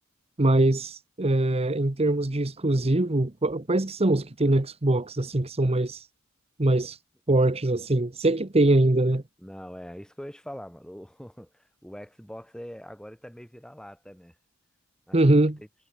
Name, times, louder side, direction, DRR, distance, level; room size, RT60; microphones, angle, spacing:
voice 1, 0.4-6.1 6.6-7.0 7.3-9.2 15.1-15.6, right 2 dB, 30° right, 1.1 m, -23 dB
voice 2, 9.4-14.3 15.1-15.7, equal, 5° left, 6.0 m, -43 dB
head